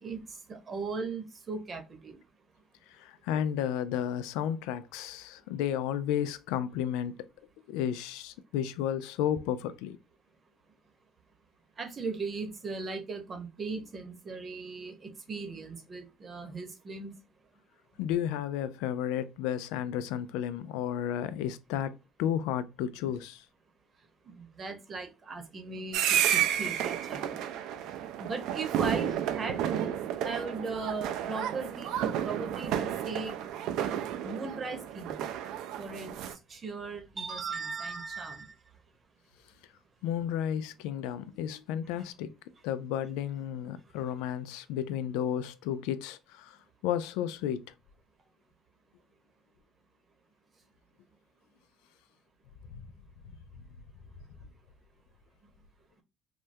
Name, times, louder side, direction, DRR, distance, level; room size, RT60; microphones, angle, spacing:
voice 1, 0.0-2.2 11.8-17.1 24.4-27.4 28.2-29.9 30.2-31.9 32.2-33.3 34.2-35.3 35.8-36.1 36.5-38.5, right 4 dB, 35° right, 0.8 m, -38 dB
voice 2, 2.9-7.3 7.7-10.0 18.0-23.4 40.0-42.3 42.6-46.6 46.8-47.6 52.7-52.8, left 10 dB, 85° left, 0.3 m, -32 dB
sound 1, 25.9-36.4, right 10 dB, 75° right, 0.4 m, -31 dB
3.3 x 2.2 x 2.6 m
supercardioid pair, 95°, 0 cm